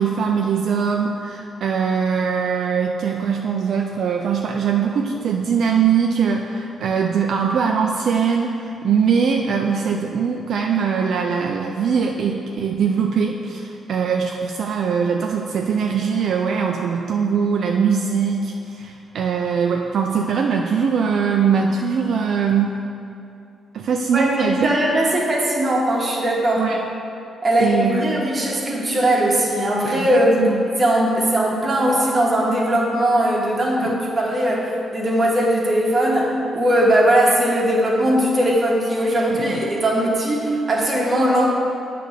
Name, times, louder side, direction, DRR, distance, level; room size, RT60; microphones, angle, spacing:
voice 1, 0.0-22.8 23.7-24.7 26.6-26.8 27.6-28.2 29.9-30.6 33.8-33.9 39.3-39.6, right 6 dB, 65° right, 1 dB, 0.4 m, -21 dB
voice 2, 24.1-26.7 27.4-30.5 30.8-41.5, right 1 dB, 30° right, -3 dB, 1.5 m, -19 dB
8.2 x 3.4 x 6.5 m, 2.6 s
cardioid pair, 105°, 0 cm